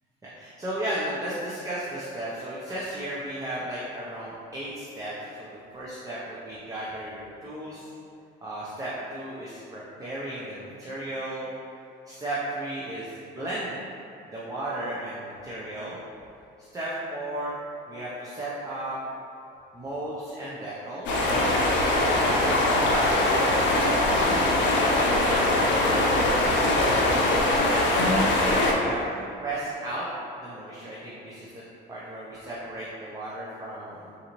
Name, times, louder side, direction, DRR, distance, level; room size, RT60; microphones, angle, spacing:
voice 1, 0.4-7.9 8.4-11.5 12.1-13.8 14.3-16.0 16.7-17.6 17.9-19.0 19.7-21.1 21.8-23.6 24.0-24.5 24.9-26.4 27.4-30.0 30.4-31.6 31.9-34.2, right 1 dB, 15° right, -7 dB, 0.5 m, -35 dB
sound 1, 21.1-28.7, left 1 dB, 65° left, 0.6 m, -22 dB
3.9 x 2.5 x 3.0 m, 2.7 s
cardioid pair, 110°, 20 cm